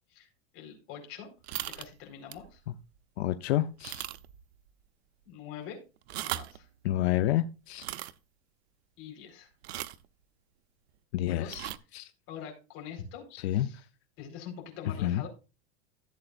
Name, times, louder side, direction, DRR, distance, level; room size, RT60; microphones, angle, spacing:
voice 1, 0.5-1.3 1.6-2.6 5.3-5.8 6.2-6.7 9.0-9.5 11.3-11.5 12.3-13.2 13.5-13.9 14.2-15.3, left 8 dB, 45° left, 2 dB, 4.3 m, -44 dB
sound 1, 1.4-1.9 2.3-2.5 3.0-3.1 3.8-4.4 4.7-4.8 6.0-6.6 7.7-8.1 9.6-10.1 11.5-11.8, right 15 dB, 80° right, 0.8 m, -37 dB
voice 2, 3.2-4.0 6.8-7.8 11.1-11.7 11.9-12.1 13.4-13.7 15.0-15.2, left 13 dB, 90° left, 11 dB, 0.7 m, -28 dB
15.5 x 7.9 x 2.5 m, 0.31 s
supercardioid pair, 165°, 31 cm